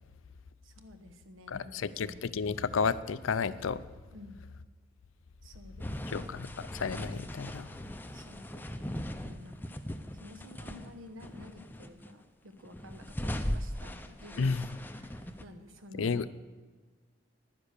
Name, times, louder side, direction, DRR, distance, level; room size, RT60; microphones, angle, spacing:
voice 1, 0.6-2.4 4.1-4.4 5.4-6.3 8.1-8.9 9.2-9.8 10.1-16.3, left 1 dB, 85° right, 9 dB, 1.2 m, -52 dB
voice 2, 1.5-3.8 6.1-7.7 14.4-14.7 16.0-16.3, left 5 dB, 85° left, 16 dB, 0.5 m, -32 dB
sound 1, 5.8-10.9 11.2-12.1 12.6-15.4, equal, 10° left, 0.5 m, -39 dB
12.0 x 9.8 x 6.7 m, 1.4 s
head